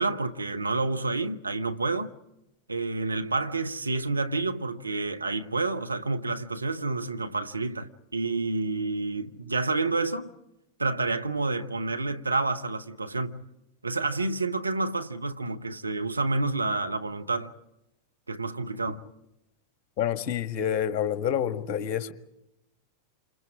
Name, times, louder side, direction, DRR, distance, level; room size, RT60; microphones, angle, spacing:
voice 1, 0.0-2.1 2.7-10.3 10.8-13.4 13.8-17.5 18.3-19.0, right 3 dB, 80° right, 1.1 m, -29 dB
voice 2, 20.0-22.1, left 9 dB, 40° left, 1.5 m, -28 dB
28.5 x 28.0 x 4.9 m
figure-of-eight pair, 90°, 0 cm